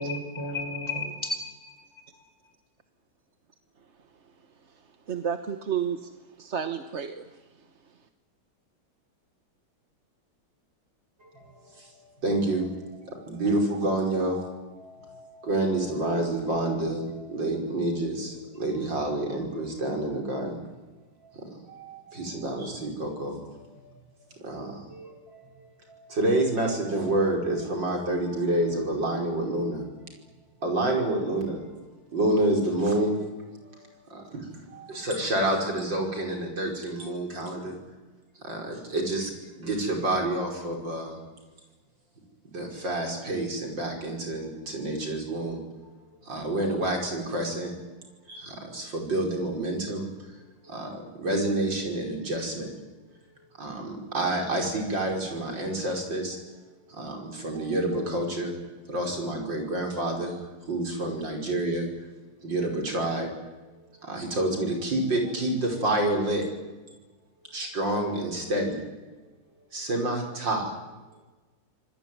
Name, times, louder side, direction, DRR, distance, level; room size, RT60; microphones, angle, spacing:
voice 1, 0.0-2.2, left 2 dB, 10° left, 4 dB, 5.2 m, -33 dB
voice 2, 5.1-7.5, right 8 dB, 40° right, 8 dB, 1.2 m, -31 dB
voice 3, 11.2-20.6 21.2-24.0 24.3-29.9 30.6-31.6 32.1-33.2 33.6-37.8 38.4-39.3 39.6-41.2 42.5-45.6 46.2-47.7 48.3-50.1 50.6-52.7 53.6-56.4 56.9-58.6 58.9-60.4 60.7-61.9 62.4-63.3 63.8-66.5 67.5-68.8 69.7-70.7, right 1 dB, 55° right, 2 dB, 6.0 m, -29 dB
27.0 x 20.5 x 9.4 m, 1.2 s
omnidirectional pair, 2.4 m